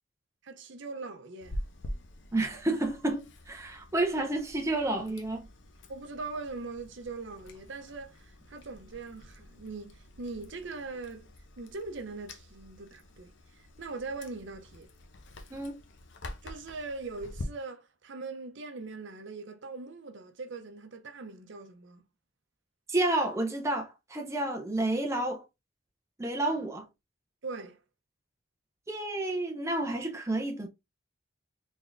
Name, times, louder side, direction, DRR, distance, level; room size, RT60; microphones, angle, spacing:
voice 1, 0.4-1.6 5.9-11.3 11.6-14.9 16.4-22.0 27.4-27.8, right 3 dB, 60° right, 0.6 m, -41 dB
Chewing mastication, 1.4-17.4, left 1 dB, 60° left, 0.7 m, -46 dB
voice 2, 2.3-5.4 15.5-15.8 22.9-25.4 26.2-26.8 28.9-30.7, right 2 dB, 15° right, 0.5 m, -30 dB
4.0 x 3.4 x 2.5 m
head